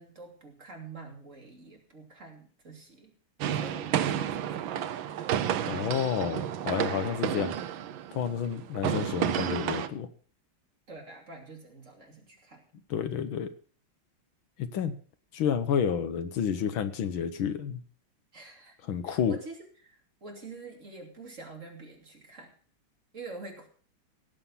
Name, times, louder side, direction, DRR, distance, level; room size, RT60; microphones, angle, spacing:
voice 1, 0.0-3.1 3.5-5.0 10.9-12.6 18.3-18.7 19.0-22.5 23.1-23.7, right 3 dB, 35° right, 1 dB, 3.1 m, -46 dB
sound 1, 3.4-9.9, right 10 dB, 75° right, 1.5 m, -31 dB
voice 2, 5.7-7.5 8.1-10.1 12.9-13.5 14.6-15.0 15.3-17.8 18.9-19.3, left 8 dB, 75° left, 11 dB, 1.8 m, -30 dB
17.5 x 7.6 x 5.6 m, 0.44 s
omnidirectional pair, 2.3 m